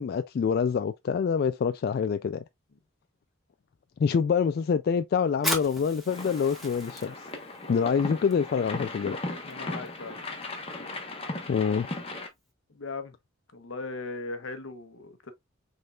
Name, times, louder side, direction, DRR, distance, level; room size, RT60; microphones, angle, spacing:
voice 1, 0.0-2.4 4.0-7.3 7.7-9.2 11.5-11.9, left 6 dB, 50° left, 0.3 m, -26 dB
Fire, 5.3-12.5, equal, ahead, 1.6 m, -39 dB
sound 1, 6.1-12.3, left 2 dB, 30° left, 1.1 m, -37 dB
voice 2, 9.5-10.2 12.7-13.1 13.5-15.3, left 3 dB, 75° left, 0.9 m, -38 dB
5.3 x 3.7 x 2.4 m
head